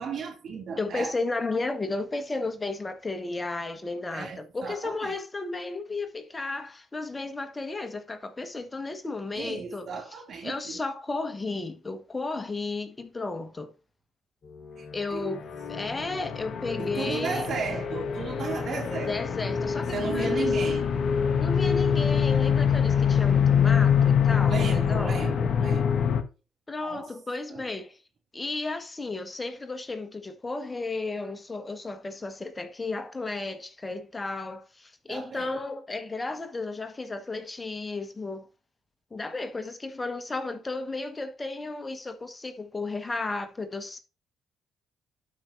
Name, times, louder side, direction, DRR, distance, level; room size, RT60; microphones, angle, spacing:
voice 1, 0.0-1.1 4.1-5.2 9.3-10.8 14.8-15.3 16.8-19.4 19.9-20.9 24.5-26.1 26.8-27.1 27.5-27.6 35.1-35.6, right 5 dB, 60° right, 2.7 m, -35 dB
voice 2, 0.8-9.9 10.4-13.7 14.9-15.4 15.7-17.5 19.1-20.5 21.4-25.2 26.7-28.0 28.3-38.5 39.1-44.0, left 3 dB, 25° left, 1.5 m, -33 dB
sound 1, 15.3-26.2, left 7 dB, 55° left, 1.1 m, -24 dB
12.0 x 5.4 x 2.7 m
hypercardioid pair, 45°, 0 cm